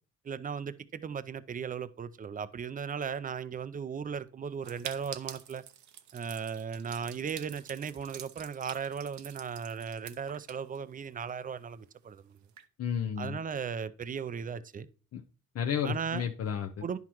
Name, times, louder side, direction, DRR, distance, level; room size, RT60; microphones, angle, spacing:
voice 1, 0.2-5.6 6.1-12.4 13.2-14.9 15.8-16.2 16.8-17.0, right 6 dB, 30° right, 0.5 m, -37 dB
sound 1, 4.6-11.3 11.6-11.7 11.9-12.0 12.4-12.6, right 10 dB, 70° right, 0.8 m, -47 dB
voice 2, 12.8-13.4 15.1-15.2 15.5-16.8, left 8 dB, 55° left, 0.7 m, -32 dB
10.0 x 5.8 x 3.0 m
cardioid pair, 90°, 30 cm